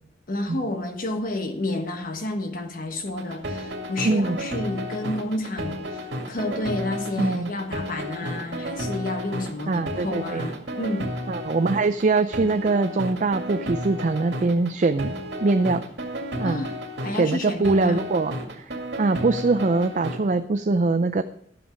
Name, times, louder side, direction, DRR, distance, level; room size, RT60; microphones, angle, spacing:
voice 1, 0.3-11.1 16.4-16.7 17.0-18.0, left 2 dB, 50° left, 6 dB, 1.3 m, -30 dB
sound 1, 3.1-20.2, equal, 85° right, 2.2 m, -32 dB
voice 2, 4.0-4.4 7.2-7.5 9.7-10.5 11.3-15.1 15.4-15.8 16.4-16.6 17.1-21.2, right 3 dB, 45° right, 9 dB, 0.4 m, -23 dB
11.5 x 7.4 x 5.0 m, 0.68 s
head